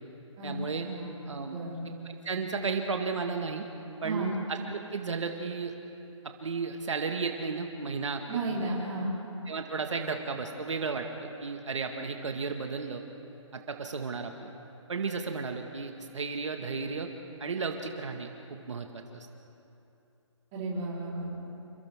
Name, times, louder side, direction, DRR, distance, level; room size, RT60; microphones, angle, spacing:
voice 1, 0.4-0.9 1.3-1.6 2.1-3.7 4.0-5.7 6.2-8.2 9.5-13.0 13.5-14.5 14.9-17.1 17.4-19.3, right 4 dB, 70° right, 4 dB, 1.7 m, -34 dB
voice 2, 4.0-4.3 8.3-9.1 20.5-21.4, right 2 dB, 15° right, -7 dB, 3.9 m, -33 dB
29.5 x 26.5 x 3.7 m, 2.9 s
hypercardioid pair, 180°, 16 cm